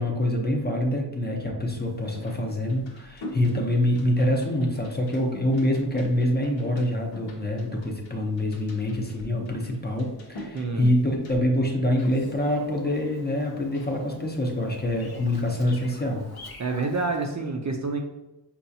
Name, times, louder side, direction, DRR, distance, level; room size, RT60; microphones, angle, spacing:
voice 1, 0.0-16.3, left 1 dB, 20° left, 0 dB, 0.6 m, -25 dB
sound 1, 1.7-11.4, left 1 dB, 85° left, 0.9 m, -45 dB
voice 2, 10.5-10.9 16.6-18.0, right 3 dB, 40° right, 2 dB, 0.4 m, -28 dB
Bird vocalization bird call bird song, 12.0-17.3, left 3 dB, 55° left, 0.7 m, -48 dB
5.4 x 2.4 x 2.7 m, 0.94 s
wide cardioid pair, 115°, 45 cm